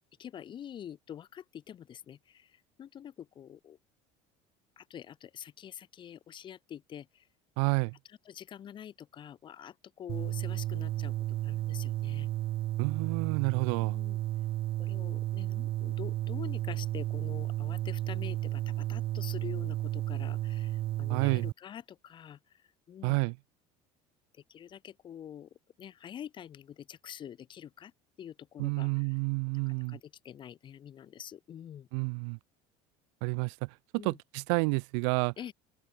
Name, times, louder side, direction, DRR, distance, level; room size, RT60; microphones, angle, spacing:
voice 1, 0.2-3.8 4.8-7.3 8.1-12.3 13.8-14.2 14.8-23.2 24.5-25.5 25.8-27.9 28.2-29.2 29.7-31.9 34.0-34.2 35.4-35.5, left 9 dB, 35° left, 3.8 m, -46 dB
voice 2, 7.6-7.9 12.8-14.0 21.1-21.4 23.0-23.3 28.6-30.0 31.9-32.4 33.2-33.5 34.0-35.3, right 38 dB, 90° right, 0.7 m, -29 dB
sound 1, 10.1-21.5, right 15 dB, 40° right, 0.4 m, -33 dB
cardioid pair, 155°, 15 cm